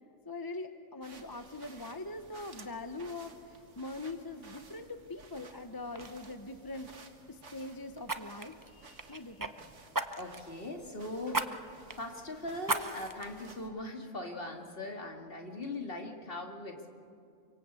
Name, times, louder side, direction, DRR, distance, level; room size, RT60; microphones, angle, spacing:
voice 1, 0.2-9.5, left 2 dB, 20° left, 8 dB, 0.9 m, -43 dB
sound 1, 1.0-13.7, right 3 dB, 65° right, 2.1 m, -56 dB
Fire, 5.4-5.6 5.9-6.1 8.0-9.5 9.9-10.5 11.3-11.5 11.9-12.0 12.6-13.3 13.8-13.9, right 2 dB, 20° right, 0.8 m, -35 dB
voice 2, 10.2-11.5 11.9-16.9, left 2 dB, 45° left, 2 dB, 2.7 m, -40 dB
26.0 x 24.5 x 8.4 m, 2.4 s
omnidirectional pair, 1.3 m